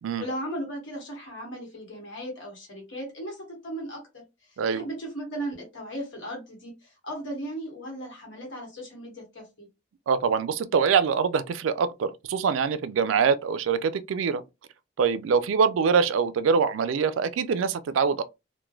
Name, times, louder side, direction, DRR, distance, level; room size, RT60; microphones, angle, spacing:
voice 1, 0.2-4.2 4.5-9.7, right 1 dB, 70° left, 1.1 m, -37 dB
voice 2, 10.1-14.4 15.0-18.2, right 6 dB, 80° right, 0.3 m, -24 dB
3.1 x 2.2 x 2.2 m
head